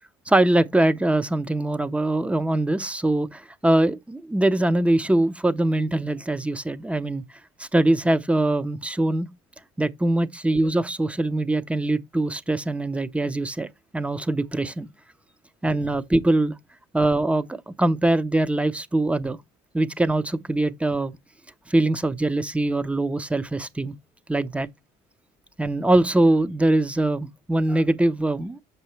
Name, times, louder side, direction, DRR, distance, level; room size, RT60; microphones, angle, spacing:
voice 1, 0.3-7.2 7.6-9.3 9.8-13.7 13.9-14.9 15.6-16.5 16.9-19.4 19.7-21.2 21.7-23.9 24.3-24.7 25.6-28.6, right 1 dB, 5° right, 0.6 m, -22 dB
7.8 x 6.8 x 3.1 m
cardioid pair, 110°, 17 cm